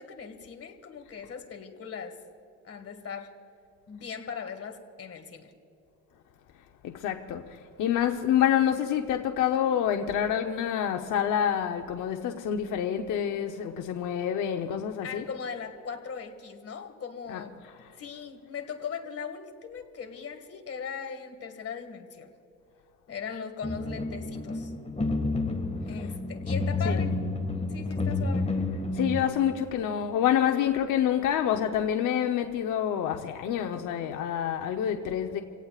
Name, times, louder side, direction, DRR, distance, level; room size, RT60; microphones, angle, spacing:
voice 1, 0.0-2.2 2.6-3.3 3.9-5.5 15.0-17.6 18.0-22.3 23.1-24.7 25.9-27.1 27.7-28.5, left 6 dB, 50° left, 2.0 m, -39 dB
voice 2, 6.8-15.2 17.3-17.4 26.9-27.0 28.9-35.4, left 9 dB, 85° left, 0.9 m, -27 dB
sound 1, 23.6-29.3, left 2 dB, 20° left, 1.9 m, -30 dB
27.5 x 17.5 x 2.5 m
cardioid pair, 90°, 30 cm